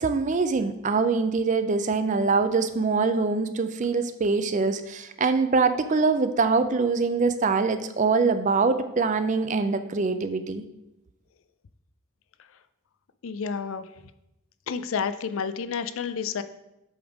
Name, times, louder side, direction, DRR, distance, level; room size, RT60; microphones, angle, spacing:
voice 1, 0.0-10.6, right 4 dB, 35° right, 10 dB, 0.4 m, -24 dB
voice 2, 13.2-13.8 14.7-16.4, left 6 dB, 70° left, 11 dB, 0.4 m, -30 dB
7.9 x 3.6 x 4.8 m, 0.90 s
head